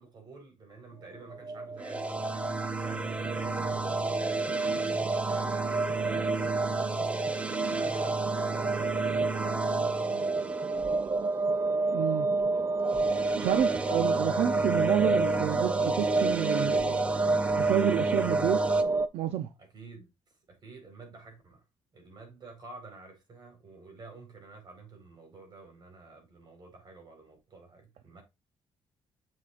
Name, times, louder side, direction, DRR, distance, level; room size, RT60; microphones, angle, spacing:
voice 1, 0.0-6.8 7.7-10.7 19.6-20.1 20.5-21.6 21.9-28.2, right 3 dB, 45° right, 4.4 m, -49 dB
sound 1, 1.1-19.1, right 3 dB, 30° right, 0.4 m, -29 dB
sound 2, 1.8-11.3 12.8-18.8, right 2 dB, 10° right, 0.9 m, -34 dB
voice 2, 11.9-12.3 13.4-17.0 17.6-18.6 19.1-19.5, right 11 dB, 80° right, 0.6 m, -29 dB
7.1 x 6.4 x 2.5 m
cardioid pair, 95°, 10 cm